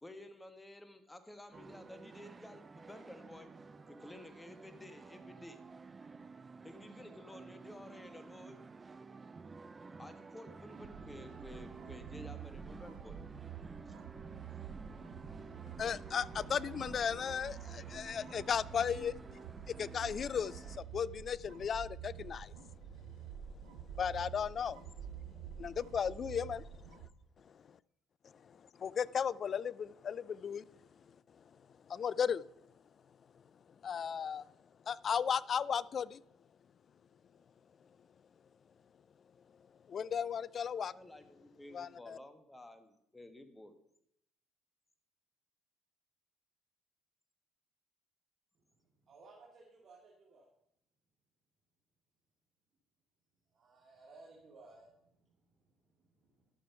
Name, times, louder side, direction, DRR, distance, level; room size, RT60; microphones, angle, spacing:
voice 1, 0.0-3.6 3.9-5.6 6.6-8.6 10.0-13.2 13.9-14.0 40.7-43.8, left 1 dB, 15° left, 1.6 m, -52 dB
sound 1, 1.5-20.8, right 4 dB, 30° right, 0.7 m, -52 dB
sound 2, 10.7-27.1, right 9 dB, 80° right, 1.1 m, -49 dB
voice 2, 15.7-19.4 19.7-22.5 23.9-24.8 25.6-27.0 28.4-30.6 31.9-32.5 33.8-34.5 34.9-36.2 39.9-40.9 41.7-42.2, left 7 dB, 45° left, 0.4 m, -36 dB
voice 3, 48.5-50.4 53.5-56.5, right 3 dB, 50° right, 2.4 m, -60 dB
11.5 x 6.9 x 5.6 m
hypercardioid pair, 65°, 0 cm